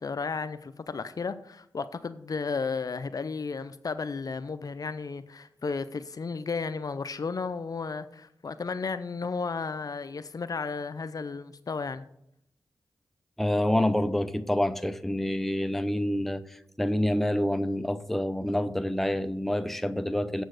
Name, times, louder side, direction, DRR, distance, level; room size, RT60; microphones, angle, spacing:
voice 1, 0.0-12.0, left 4 dB, 55° left, 12 dB, 0.5 m, -33 dB
voice 2, 13.4-20.4, left 1 dB, 5° left, 10 dB, 0.7 m, -27 dB
7.6 x 6.2 x 6.4 m, 0.77 s
cardioid pair, 45°, 7 cm